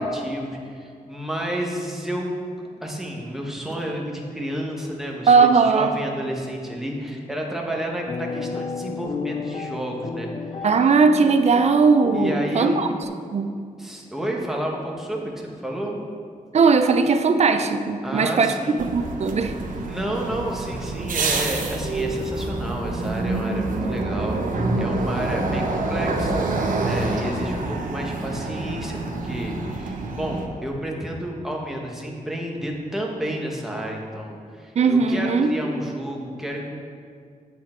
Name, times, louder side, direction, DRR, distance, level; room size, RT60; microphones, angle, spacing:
voice 1, 0.0-2.4 2.7-10.3 10.6-10.7 12.1-12.8 13.8-16.0 18.0-18.9 19.9-26.4 26.8-36.7, right 1 dB, 5° right, -1 dB, 1.2 m, -30 dB
voice 2, 5.3-5.9 10.6-12.9 13.3-13.5 16.5-18.5 18.8-19.5 34.8-35.5, right 4 dB, 50° right, 8 dB, 0.6 m, -18 dB
sound 1, 8.1-13.0, left 5 dB, 35° left, 0.4 m, -33 dB
sound 2, 18.8-30.5, right 2 dB, 70° right, 1.0 m, -27 dB
8.5 x 8.3 x 4.4 m, 2.2 s
wide cardioid pair, 155°, 14 cm